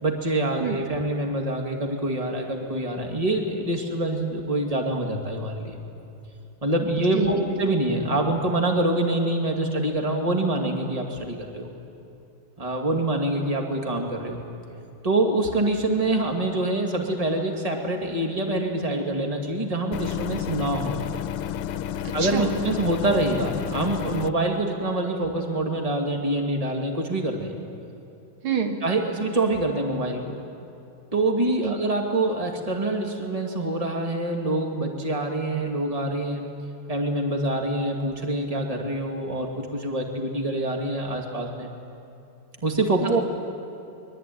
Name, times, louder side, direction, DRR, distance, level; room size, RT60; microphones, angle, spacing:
voice 1, 0.0-5.8 6.6-11.7 12.6-14.4 15.0-20.9 22.1-27.5 28.8-30.4 31.1-36.5 36.9-41.7 42.6-43.0, right 1 dB, 15° right, 2 dB, 2.3 m, -25 dB
sound 1, 19.9-24.3, left 10 dB, 85° left, 1.7 m, -31 dB
voice 2, 22.0-22.6 28.4-28.8 31.6-31.8 43.0-43.2, right 6 dB, 70° right, 5 dB, 2.3 m, -26 dB
23.0 x 22.5 x 9.4 m, 2.7 s
omnidirectional pair, 2.4 m